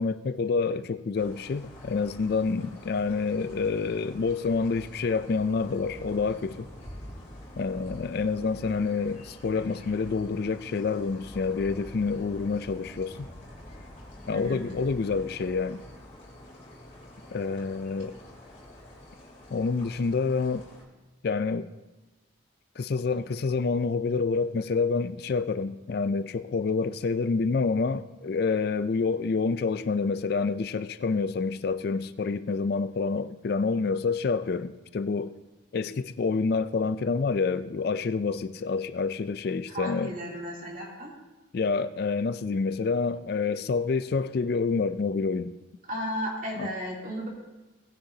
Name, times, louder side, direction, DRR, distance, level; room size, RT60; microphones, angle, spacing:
voice 1, 0.0-6.7 7.6-13.3 14.3-15.8 17.3-18.2 19.5-20.7 21.2-21.7 22.8-35.4 35.7-40.1 41.5-45.5 46.6-46.7, left 4 dB, 55° left, 0.4 m, -28 dB
sound 1, 1.1-20.8, left 1 dB, 40° left, 3.4 m, -47 dB
voice 2, 14.3-14.7 39.7-41.2 45.9-47.3, equal, 45° right, 3.0 m, -34 dB
18.5 x 9.8 x 2.8 m
head